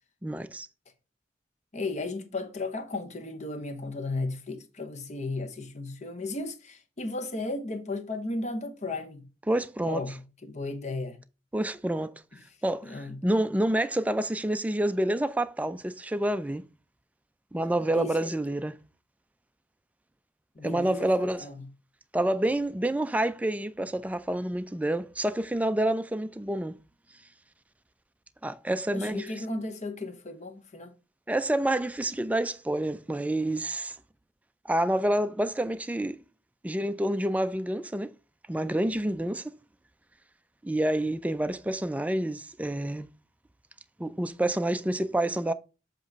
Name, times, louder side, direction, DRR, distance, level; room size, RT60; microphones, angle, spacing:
voice 1, 0.2-0.7 9.5-10.0 11.5-12.1 12.6-16.6 17.5-18.8 20.6-21.5 22.1-26.8 28.4-29.3 31.3-34.0 34.6-36.2 36.6-38.1 38.5-39.5 40.6-43.1 44.0-45.5, right 1 dB, 10° right, 0.3 m, -28 dB
voice 2, 1.7-9.2 9.8-11.2 12.8-13.2 17.9-18.3 20.5-21.6 28.9-30.9, left 2 dB, 40° left, 0.9 m, -35 dB
7.6 x 3.0 x 5.2 m
head